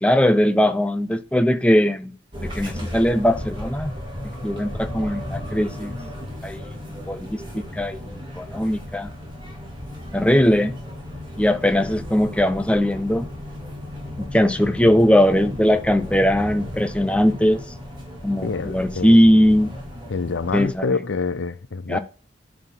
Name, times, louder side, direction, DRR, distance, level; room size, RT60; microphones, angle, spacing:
voice 1, 0.0-2.1 2.4-3.9 4.4-6.0 6.4-6.6 7.1-9.1 10.1-10.7 11.4-13.3 14.2-17.6 18.2-19.7 20.5-20.9 21.9-22.0, equal, 5° left, 0.6 m, -19 dB
sound 1, 2.3-20.8, left 1 dB, 25° right, 3.3 m, -35 dB
voice 2, 18.4-19.2 20.1-22.0, left 4 dB, 80° left, 0.6 m, -26 dB
11.0 x 4.3 x 4.3 m
head